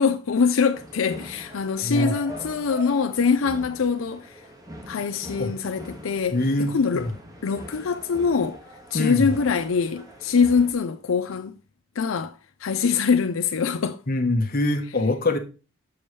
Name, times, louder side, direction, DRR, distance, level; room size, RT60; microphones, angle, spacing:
voice 1, 0.0-4.3 4.9-6.4 6.7-7.0 7.4-8.6 8.9-11.5 12.0-12.3 12.6-14.0, left 5 dB, 90° left, 0.5 m, -23 dB
sound 1, 0.7-10.7, equal, 20° right, 1.6 m, -42 dB
voice 2, 1.8-2.2 5.4-5.5 6.3-7.1 8.9-9.3 14.1-15.4, left 2 dB, 45° left, 1.2 m, -24 dB
7.0 x 7.0 x 3.2 m
head